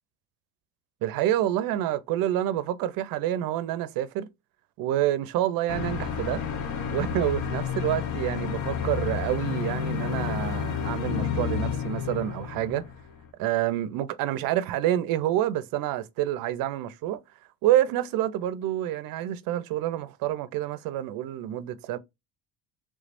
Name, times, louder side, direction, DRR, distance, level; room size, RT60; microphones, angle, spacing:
voice 1, 1.0-4.3 4.8-6.4 6.9-12.9 13.4-17.2 17.6-22.0, right 13 dB, 60° right, 0.6 m, -28 dB
sound 1, 5.7-13.3, left 7 dB, 50° left, 0.6 m, -30 dB
3.3 x 3.3 x 2.5 m
cardioid pair, 130°, 39 cm